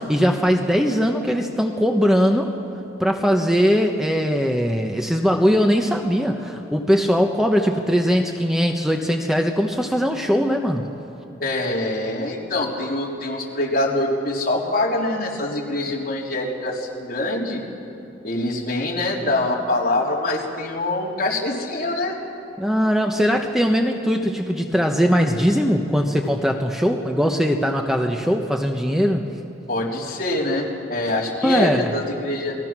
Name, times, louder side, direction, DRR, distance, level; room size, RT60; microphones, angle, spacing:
voice 1, 0.0-2.5 3.0-10.9 22.6-29.3 31.4-31.9, equal, 5° right, 3 dB, 1.0 m, -20 dB
voice 2, 11.4-17.6 18.2-22.2 29.7-32.6, left 2 dB, 55° left, -3 dB, 3.7 m, -24 dB
30.0 x 21.0 x 6.1 m, 2.9 s
head